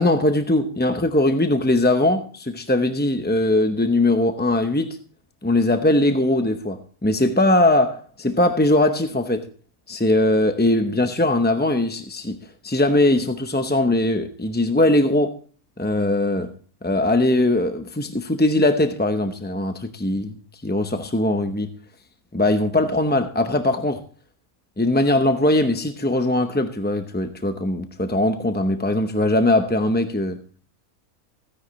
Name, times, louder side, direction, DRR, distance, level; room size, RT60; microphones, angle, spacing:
voice 1, 0.0-5.0 5.4-9.5 9.9-12.4 12.6-15.4 15.8-16.5 16.8-21.7 22.3-24.0 24.8-30.4, left 1 dB, 15° left, 0.4 m, -20 dB
16.0 x 10.0 x 3.1 m
omnidirectional pair, 1.5 m